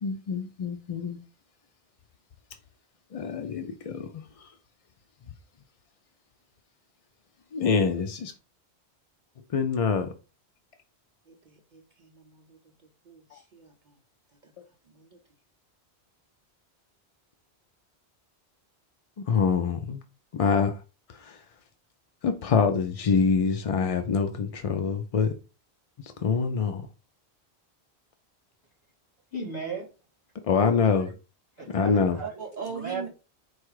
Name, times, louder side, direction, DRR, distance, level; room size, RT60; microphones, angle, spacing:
voice 1, 0.0-1.2 3.1-4.5 7.5-8.3 9.5-10.1 19.3-20.0 20.3-20.8 21.2-21.4 22.2-25.4 26.0-26.9 30.5-31.1 31.7-32.2, left 5 dB, 60° left, 0.4 m, -25 dB
voice 2, 11.3-12.7 13.0-13.9 14.4-14.5 14.9-15.2 32.2-33.1, right 6 dB, 55° right, 0.6 m, -41 dB
voice 3, 29.3-29.9 30.5-31.1 31.6-33.1, right 4 dB, 40° left, 2.8 m, -37 dB
4.6 x 2.3 x 4.6 m
omnidirectional pair, 1.1 m